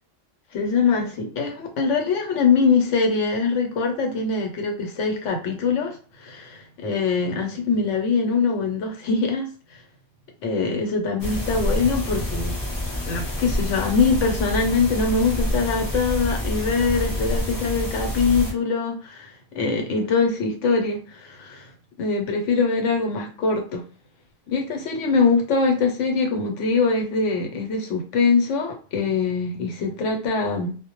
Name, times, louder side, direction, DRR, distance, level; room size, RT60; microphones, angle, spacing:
voice 1, 0.5-9.5 10.4-12.5 13.1-21.7 22.0-23.8 24.5-30.8, left 4 dB, 80° left, 3 dB, 1.0 m, -23 dB
sound 1, 11.2-18.5, left 1 dB, 30° left, 0.4 m, -27 dB
2.1 x 2.1 x 2.8 m, 0.38 s
omnidirectional pair, 1.2 m